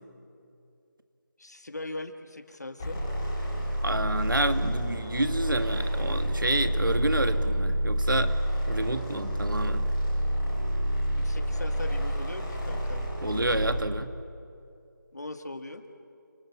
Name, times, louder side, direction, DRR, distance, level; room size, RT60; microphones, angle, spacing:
voice 1, 1.4-3.0 11.2-13.0 15.1-15.8, left 2 dB, 55° left, 8 dB, 1.9 m, -40 dB
sound 1, 2.8-13.9, equal, 10° left, 4.2 m, -28 dB
voice 2, 3.8-8.4 8.7-9.9 13.2-14.1, right 2 dB, 80° right, 9 dB, 2.0 m, -29 dB
29.5 x 18.0 x 8.7 m, 2.6 s
figure-of-eight pair, 180°, 11 cm